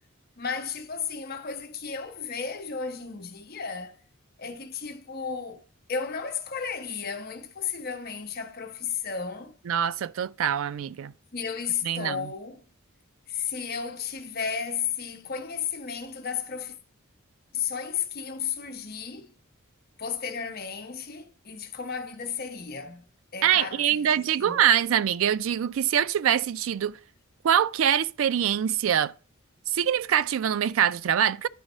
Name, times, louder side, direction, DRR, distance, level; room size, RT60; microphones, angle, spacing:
voice 1, 0.4-4.0 4.4-5.6 5.9-9.5 11.3-12.6 13.3-16.7 17.5-19.3 20.0-23.1 23.3-24.6, left 6 dB, 45° left, 0.8 m, -33 dB
voice 2, 9.7-11.1 11.8-12.3 23.4-27.0 27.4-29.1 29.7-31.5, right 9 dB, 70° right, 0.3 m, -24 dB
10.0 x 3.9 x 5.4 m
head